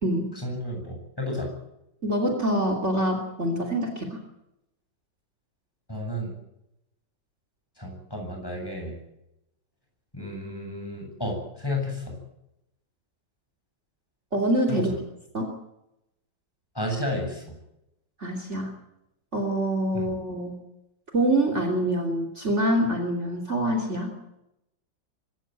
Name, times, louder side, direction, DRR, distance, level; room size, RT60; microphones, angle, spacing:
voice 1, 0.4-1.5 5.9-6.3 7.8-8.9 10.1-12.1 14.7-14.8 16.7-17.4 19.9-20.1, left 1 dB, 10° left, 1 dB, 7.6 m, -32 dB
voice 2, 2.0-4.2 14.3-15.0 15.3-15.6 18.2-18.7 19.3-20.6 21.1-24.1, right 1 dB, 40° right, 4 dB, 3.3 m, -25 dB
24.0 x 14.5 x 9.1 m, 0.86 s
omnidirectional pair, 1.9 m